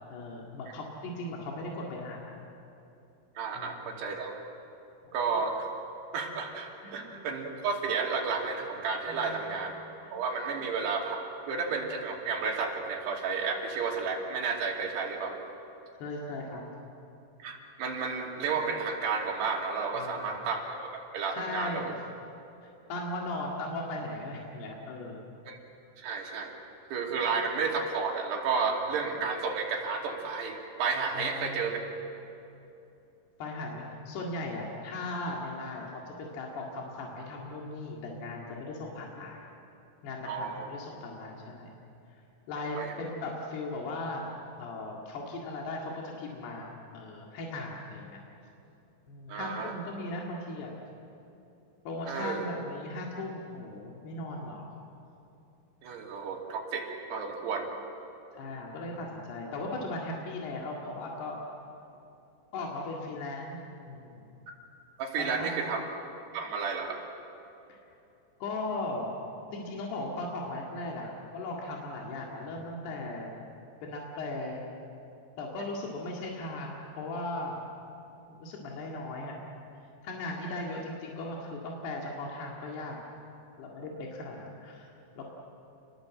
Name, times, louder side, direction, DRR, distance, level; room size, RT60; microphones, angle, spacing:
voice 1, 0.1-2.3 3.6-4.0 6.8-7.1 9.1-9.6 10.0-10.1 10.5-10.6 16.0-16.6 20.0-20.2 21.3-22.0 22.6-25.2 31.1-31.7 33.4-39.4 40.0-41.7 42.5-44.3 44.6-46.7 46.9-48.2 49.1-50.7 51.9-54.7 58.3-61.5 62.5-64.3 65.2-65.6 67.7-67.8 68.4-69.2 69.5-73.3 73.8-74.6 75.4-77.6 78.3-79.4 80.0-83.0 83.6-84.9 85.2-85.4, left 2 dB, 80° left, -2 dB, 4.3 m, -38 dB
voice 2, 3.4-4.4 5.1-5.7 6.1-9.8 10.1-11.2 11.5-15.4 17.4-21.8 22.6-22.8 25.5-25.6 26.0-26.6 26.9-31.8 40.2-40.7 42.8-42.9 49.3-49.7 52.1-52.5 55.8-57.7 65.0-65.8 66.3-67.0, right 5 dB, 90° right, 0 dB, 4.8 m, -32 dB
29.0 x 20.5 x 7.7 m, 2.8 s
omnidirectional pair, 4.6 m